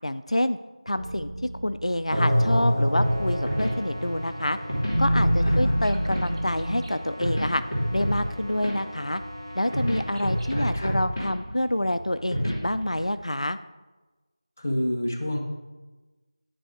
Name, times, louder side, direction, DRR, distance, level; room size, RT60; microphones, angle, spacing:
voice 1, 0.0-0.6 0.9-1.3 1.6-4.6 5.0-7.6 7.9-9.2 9.6-13.6, left 1 dB, 85° left, 12 dB, 0.4 m, -27 dB
sound 1, 0.9-6.8, equal, 75° right, 2.2 m, -26 dB
sound 2, 2.9-13.0, equal, 10° left, 1.8 m, -30 dB
sound 3, 3.0-10.7, equal, 50° right, 1.2 m, -41 dB
voice 2, 5.4-5.8 10.5-10.9 14.6-15.4, left 1 dB, 25° left, 1 dB, 0.8 m, -28 dB
10.0 x 4.7 x 4.7 m, 1.2 s
figure-of-eight pair, 175°, 3 cm